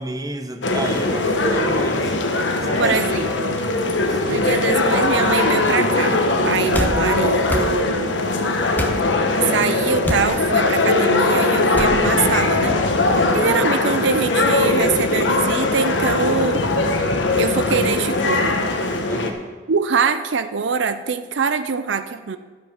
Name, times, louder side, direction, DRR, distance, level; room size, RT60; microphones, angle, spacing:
voice 1, 0.0-2.1 2.6-3.0 4.1-4.5 13.1-13.5 19.1-19.4, right 1 dB, 20° right, 7 dB, 0.9 m, -31 dB
sound 1, 0.6-19.3, left 2 dB, 85° left, 1.3 m, -20 dB
voice 2, 2.8-3.6 4.3-8.2 9.5-12.7 13.3-16.6 17.4-18.7 19.7-22.4, right 5 dB, 75° right, 11 dB, 0.6 m, -23 dB
sound 2, 6.7-7.0 7.5-7.7 8.7-9.0 10.0-10.3 11.7-11.9, left 1 dB, 10° left, 1.0 m, -24 dB
12.0 x 8.1 x 5.9 m, 1.4 s
head